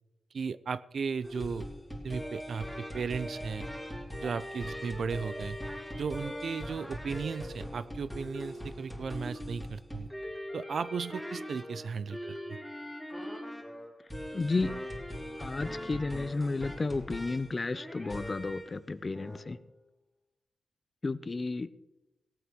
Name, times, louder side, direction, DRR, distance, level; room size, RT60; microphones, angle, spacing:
voice 1, 0.3-1.7 2.0-3.7 4.2-5.6 5.9-10.1 10.5-12.6, right 5 dB, 60° right, 16 dB, 0.5 m, -36 dB
sound 1, 1.2-18.8 19.1-19.4, equal, ahead, 3.0 m, -41 dB
voice 2, 14.3-14.7 15.4-19.6 21.0-21.7, left 3 dB, 30° left, 15 dB, 0.6 m, -32 dB
17.5 x 8.3 x 6.0 m, 0.94 s
cardioid pair, 100°, 0 cm